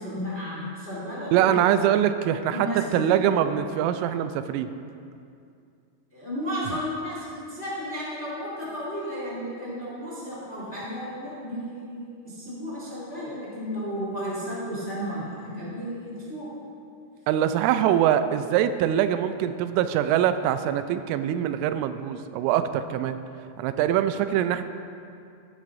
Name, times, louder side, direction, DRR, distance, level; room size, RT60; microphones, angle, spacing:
voice 1, 0.0-1.6 2.5-3.3 6.1-16.5, equal, 20° left, -8 dB, 2.0 m, -33 dB
voice 2, 1.3-4.7 17.3-23.2 23.6-24.6, right 10 dB, 90° right, 10 dB, 3.1 m, -23 dB
16.0 x 12.0 x 2.6 m, 2.4 s
omnidirectional pair, 5.6 m